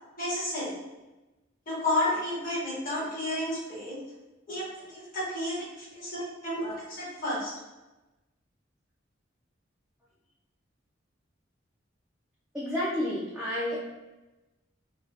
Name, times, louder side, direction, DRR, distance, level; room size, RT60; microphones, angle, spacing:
voice 1, 0.2-0.8 1.7-4.0 4.5-7.5, left 1 dB, 45° left, -8 dB, 1.5 m, -31 dB
voice 2, 12.5-13.8, left 1 dB, 5° right, -10 dB, 0.6 m, -30 dB
3.1 x 2.4 x 2.8 m, 1.1 s
head